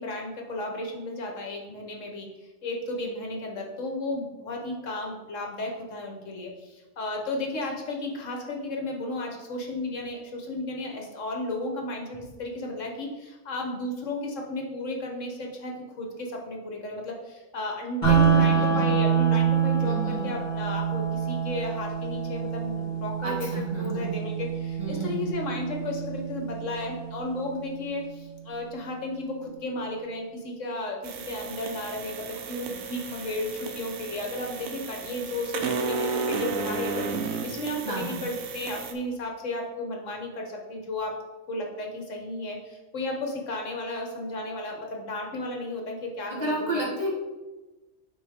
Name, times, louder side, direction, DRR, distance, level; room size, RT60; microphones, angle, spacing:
voice 1, 0.0-2.3 2.6-31.0 31.3-41.1 41.5-46.9, left 2 dB, 65° left, 1 dB, 1.4 m, -34 dB
sound 1, 18.0-28.0, right 7 dB, 35° left, 2.6 m, -26 dB
voice 2, 18.0-18.9 19.8-20.3 23.2-24.2 24.8-25.3 37.8-38.2 46.3-47.1, right 1 dB, 30° right, -4 dB, 1.3 m, -32 dB
sound 2, 31.0-38.9, right 4 dB, 80° right, 1.1 m, -33 dB
9.2 x 4.1 x 3.6 m, 1.2 s
omnidirectional pair, 1.4 m